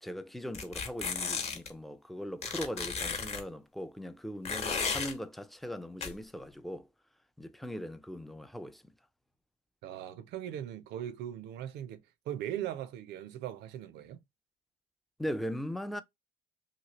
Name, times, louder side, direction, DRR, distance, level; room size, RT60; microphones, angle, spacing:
voice 1, 0.0-6.9 7.4-8.9 15.2-16.0, equal, ahead, 0.3 m, -39 dB
sound 1, 0.5-1.7 2.4-3.4 4.4-5.1 6.0-6.1, left 5 dB, 40° left, 0.9 m, -34 dB
voice 2, 9.8-14.2, right 11 dB, 80° right, 0.5 m, -39 dB
2.9 x 2.7 x 2.9 m
cardioid pair, 110°, 17 cm